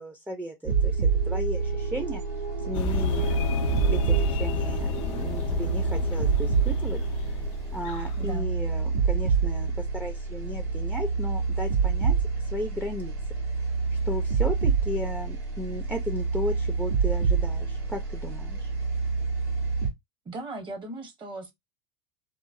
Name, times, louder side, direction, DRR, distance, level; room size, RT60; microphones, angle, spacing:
voice 1, 0.0-2.2 2.6-7.0 7.7-12.1 12.5-13.1 14.0-18.7, equal, 10° right, 0.6 m, -35 dB
sound 1, 0.7-19.9, right 5 dB, 70° right, 1.5 m, -27 dB
sound 2, 2.7-8.2, left 5 dB, 65° left, 0.4 m, -31 dB
voice 2, 8.2-8.5 20.2-21.5, right 2 dB, 30° right, 1.0 m, -38 dB
3.0 x 2.0 x 2.6 m
hypercardioid pair, 85°, 16 cm